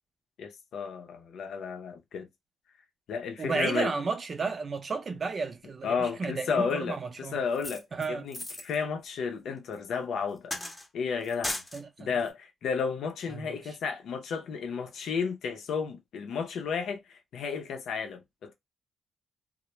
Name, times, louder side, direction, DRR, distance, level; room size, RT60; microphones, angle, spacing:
voice 1, 0.4-2.3 3.1-3.9 5.8-10.5 10.9-11.6 12.0-18.5, left 6 dB, 75° left, 0.5 m, -33 dB
voice 2, 3.4-7.4 7.9-8.3 11.7-12.2 13.3-13.8, right 4 dB, 45° right, 0.5 m, -33 dB
sound 1, 7.5-8.8 9.7-9.8 10.5-10.9 11.2-11.8 12.2-12.3, left 1 dB, 15° left, 0.7 m, -37 dB
2.1 x 2.0 x 2.9 m
cardioid pair, 80°, 0 cm